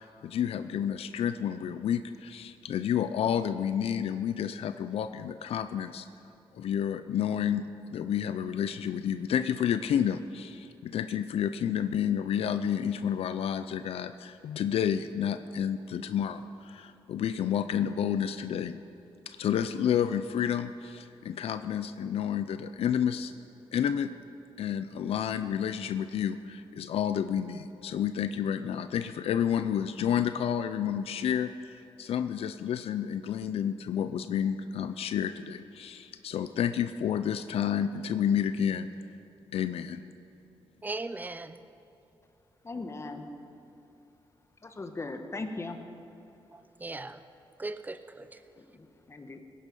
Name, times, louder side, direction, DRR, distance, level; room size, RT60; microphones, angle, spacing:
voice 1, 0.0-6.1 6.5-7.6 7.9-18.8 19.3-23.3 23.7-24.1 24.6-38.9 39.5-40.0, left 9 dB, 80° left, 10 dB, 0.5 m, -30 dB
voice 2, 40.8-41.6 46.5-47.2 47.6-48.4, right 2 dB, 15° right, 12 dB, 0.6 m, -38 dB
voice 3, 42.6-43.3 44.6-45.8 48.6-49.4, left 3 dB, 30° left, 6 dB, 1.3 m, -39 dB
18.5 x 10.5 x 5.4 m, 3.0 s
cardioid pair, 100°, 10 cm